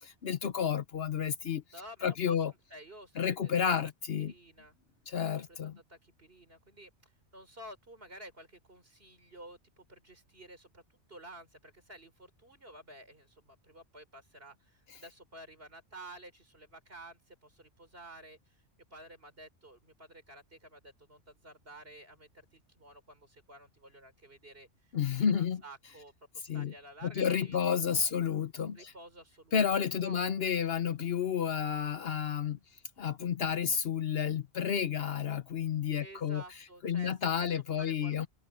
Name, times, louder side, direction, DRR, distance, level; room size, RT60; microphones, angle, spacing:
voice 1, 0.0-1.6 2.0-2.5 3.2-4.3 5.1-5.8 24.9-25.6 26.4-26.7 27.0-28.9 29.5-32.6 33.0-36.4 36.8-38.3, left 7 dB, 60° left, 1.0 m, -31 dB
voice 2, 1.7-2.4 2.7-3.7 4.3-4.7 5.5-10.8 11.1-18.6 18.9-24.9 25.2-27.6 27.9-28.1 28.7-29.7 30.0-30.2 36.0-37.5 37.8-38.3, right 1 dB, 55° right, 5.8 m, -52 dB
omnidirectional pair, 1.2 m